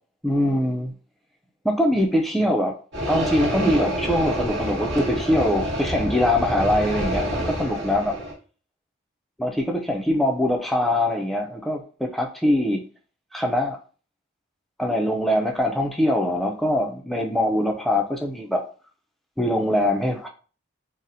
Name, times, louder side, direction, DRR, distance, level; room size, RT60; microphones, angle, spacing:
voice 1, 0.2-0.9 1.6-2.8 3.1-8.1 9.4-12.8 13.3-13.8 14.8-18.6 19.4-20.3, left 1 dB, ahead, 0.3 m, -23 dB
sound 1, 2.9-8.3, equal, 60° right, 1.0 m, -27 dB
4.0 x 2.0 x 2.6 m
head